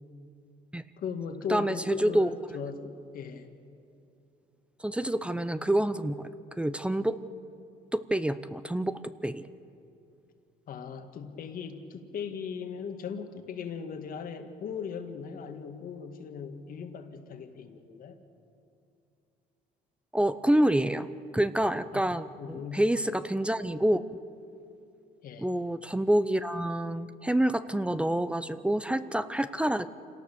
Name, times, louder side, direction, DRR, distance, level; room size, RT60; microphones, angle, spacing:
voice 1, 1.0-3.5 10.7-18.2 21.9-22.1 22.4-22.8 25.2-25.5, left 6 dB, 55° left, 7 dB, 1.8 m, -38 dB
voice 2, 1.5-2.3 4.8-6.3 6.6-7.2 7.9-9.4 20.1-21.1 21.3-24.0 25.4-29.9, right 1 dB, 5° right, 13 dB, 0.6 m, -27 dB
27.0 x 18.0 x 7.0 m, 2.6 s
cardioid pair, 110°, 17 cm